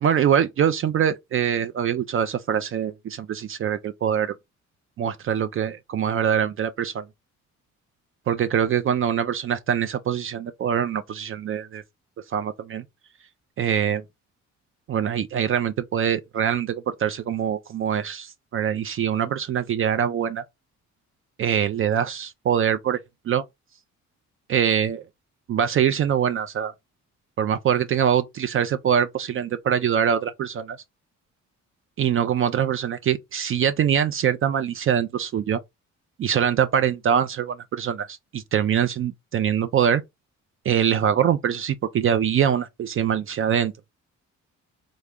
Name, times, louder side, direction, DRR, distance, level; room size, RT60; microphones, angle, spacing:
voice 1, 0.0-4.3 5.0-7.0 8.3-11.8 12.3-12.8 13.6-14.0 14.9-20.4 21.4-23.0 23.3-23.4 24.5-25.0 25.5-26.7 27.4-30.8 32.0-35.6 36.2-40.0 40.7-43.7, right 9 dB, 45° right, 0.4 m, -23 dB
3.3 x 2.0 x 3.5 m
cardioid pair, 90°, 30 cm